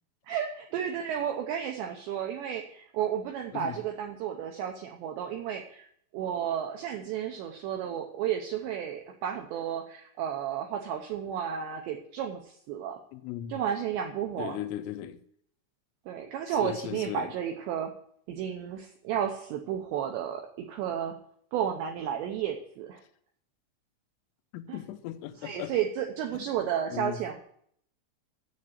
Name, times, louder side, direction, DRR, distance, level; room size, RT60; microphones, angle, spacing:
voice 1, 0.3-5.9 6.1-13.0 13.5-14.6 16.1-17.9 18.3-21.1 21.5-23.0 24.7-24.8 25.4-27.4, right 9 dB, 75° right, 2.8 m, -32 dB
voice 2, 13.1-13.6 14.4-15.2 16.6-17.3 24.5-25.7 26.3-26.5 26.9-27.2, left 12 dB, 85° left, 3.3 m, -37 dB
7.4 x 7.3 x 8.2 m
omnidirectional pair, 5.8 m